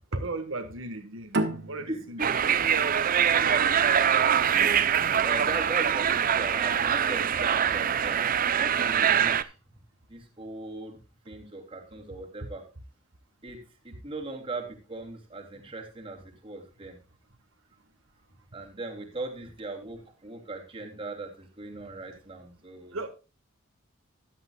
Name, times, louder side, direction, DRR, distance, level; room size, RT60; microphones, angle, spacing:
voice 1, 0.1-2.2 3.2-3.5 22.9-23.1, right 2 dB, 80° right, 1.6 m, -36 dB
sound 1, 1.3-4.5, right 2 dB, 60° right, 1.4 m, -33 dB
voice 2, 1.9-2.6 3.4-4.3 5.2-9.5 10.1-11.0 11.2-12.7 13.4-17.0 18.5-23.0, right 2 dB, 25° right, 2.8 m, -39 dB
sound 2, 2.2-9.4, right 8 dB, 45° right, 0.6 m, -24 dB
13.5 x 11.0 x 2.3 m
head